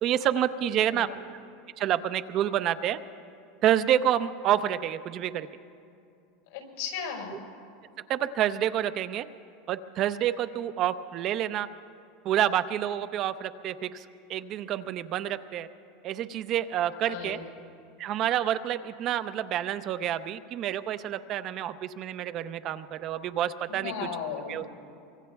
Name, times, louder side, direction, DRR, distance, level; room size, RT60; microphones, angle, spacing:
voice 1, 0.0-1.1 1.8-3.0 3.6-5.5 8.1-9.3 9.7-11.7 12.2-15.7 16.0-17.4 18.0-23.9 24.5-24.7, right 11 dB, 45° right, 12 dB, 0.6 m, -28 dB
voice 2, 0.8-1.1 6.5-7.4 17.0-17.5 23.7-24.6, left 6 dB, 80° left, 0 dB, 5.1 m, -36 dB
24.5 x 24.0 x 2.3 m, 2.5 s
supercardioid pair, 130°, 0 cm